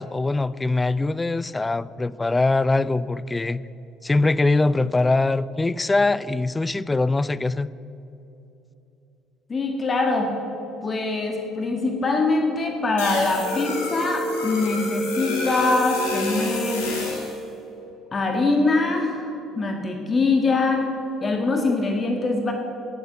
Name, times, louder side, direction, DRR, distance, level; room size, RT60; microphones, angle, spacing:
voice 1, 0.0-3.6 4.0-7.7, left 2 dB, 20° left, 18 dB, 0.4 m, -22 dB
voice 2, 9.5-10.3 10.8-16.9 18.1-19.3 19.6-20.9 21.2-22.5, left 3 dB, 35° left, 3 dB, 1.8 m, -23 dB
sound 1, 13.0-17.3, left 2 dB, 90° left, 3.6 m, -28 dB
10.5 x 10.5 x 8.1 m, 2.9 s
supercardioid pair, 75°, 0 cm